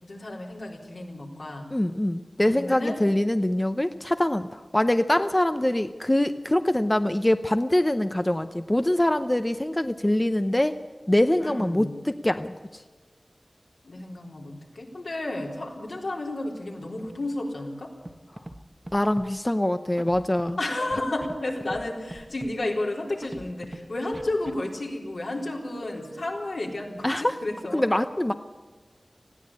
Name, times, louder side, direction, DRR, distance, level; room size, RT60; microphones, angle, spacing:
voice 1, 0.0-1.7 2.5-3.0 11.4-11.9 13.8-17.9 20.6-27.8, left 2 dB, 75° left, -1 dB, 3.9 m, -32 dB
voice 2, 1.7-10.8 11.1-12.8 18.9-20.6 27.0-27.4 27.7-28.3, left 1 dB, 20° left, 9 dB, 0.7 m, -24 dB
Scratching (performance technique), 18.1-18.2 18.4-18.6 18.9-19.3 20.0-20.5 20.9-21.4 21.6-21.8 22.1-22.5 23.2-23.8 24.1-24.5, right 1 dB, 25° right, 1.1 m, -40 dB
20.0 x 15.0 x 8.5 m, 1.3 s
wide cardioid pair, 65°, 0 cm